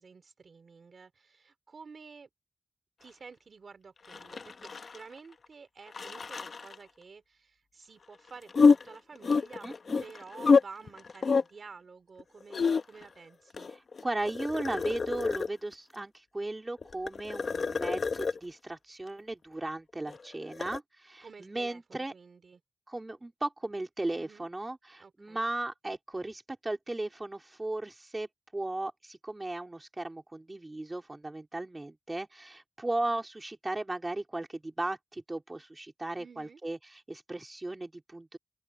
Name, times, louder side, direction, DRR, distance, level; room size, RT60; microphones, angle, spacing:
voice 1, 0.0-2.3 3.0-9.7 10.0-13.7 21.2-22.6 24.1-24.5 25.0-25.4 36.2-36.6, right 5 dB, 55° right, 2.7 m, -51 dB
sound 1, 4.1-5.2 5.4-5.5 5.9-6.7 8.5-10.6 10.9-11.4 12.2-13.1 13.5-15.7 16.8-18.4 20.1-20.8, left 5 dB, 55° left, 0.8 m, -27 dB
voice 2, 9.6-10.0 14.0-22.1 22.9-36.8 37.1-38.4, right 2 dB, 20° right, 3.4 m, -36 dB
open air
wide cardioid pair, 140°, 0 cm